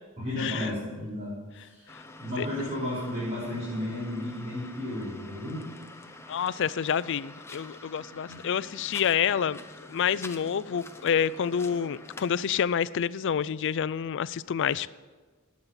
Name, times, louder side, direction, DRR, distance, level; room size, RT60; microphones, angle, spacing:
voice 1, 0.2-1.9 2.2-5.7 8.2-8.4 9.2-9.3, left 1 dB, 30° right, -10 dB, 4.6 m, -33 dB
sound 1, 1.9-12.5, left 2 dB, 10° left, 0.8 m, -47 dB
voice 2, 6.3-9.6 9.9-14.9, left 8 dB, 60° left, 18 dB, 0.4 m, -28 dB
19.0 x 8.6 x 5.8 m, 1.4 s
head